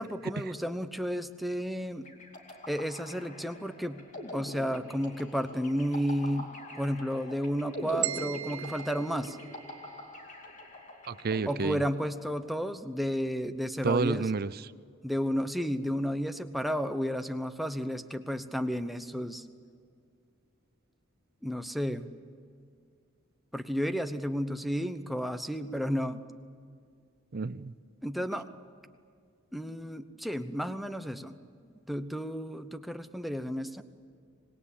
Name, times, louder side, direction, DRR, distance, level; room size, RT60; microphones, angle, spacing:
voice 1, 0.0-2.1 2.7-4.0 4.3-9.4 11.5-14.2 15.0-19.4 21.4-22.1 23.5-26.2 28.0-28.5 29.5-31.4 31.9-33.8, equal, ahead, 8 dB, 0.9 m, -32 dB
sound 1, 2.0-12.5, left 1 dB, 40° left, 2.5 m, -44 dB
sound 2, 8.0-10.2, right 13 dB, 85° right, 0.8 m, -38 dB
voice 2, 11.1-11.8 13.8-14.7 27.3-27.7 28.3-28.4, right 4 dB, 50° right, 15 dB, 0.6 m, -30 dB
25.5 x 20.0 x 8.6 m, 2.2 s
head